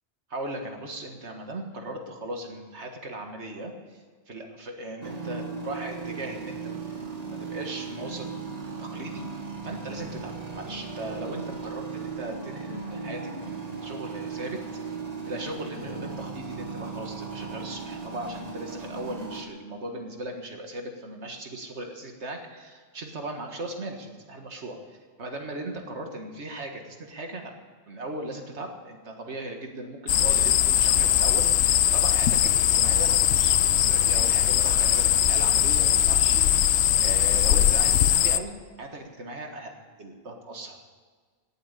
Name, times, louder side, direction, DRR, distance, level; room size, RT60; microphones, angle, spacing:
voice 1, 0.3-8.3 8.8-14.6 15.3-27.5 27.9-39.7 40.0-40.8, right 1 dB, 75° right, 3 dB, 2.0 m, -38 dB
sound 1, 5.0-19.4, right 4 dB, 35° right, 1.7 m, -37 dB
sound 2, 30.1-38.4, left 11 dB, 70° left, 0.8 m, -21 dB
17.5 x 7.9 x 8.3 m, 1.5 s
omnidirectional pair, 1.2 m